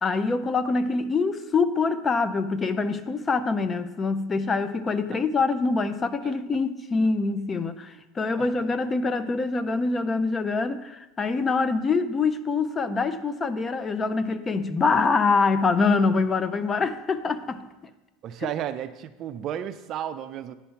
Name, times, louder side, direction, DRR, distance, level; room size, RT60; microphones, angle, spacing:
voice 1, 0.0-17.6, left 4 dB, 20° left, 12 dB, 0.5 m, -25 dB
voice 2, 18.2-20.5, right 10 dB, 40° right, 11 dB, 0.4 m, -33 dB
10.0 x 4.2 x 5.7 m, 1.0 s
supercardioid pair, 135°, 0 cm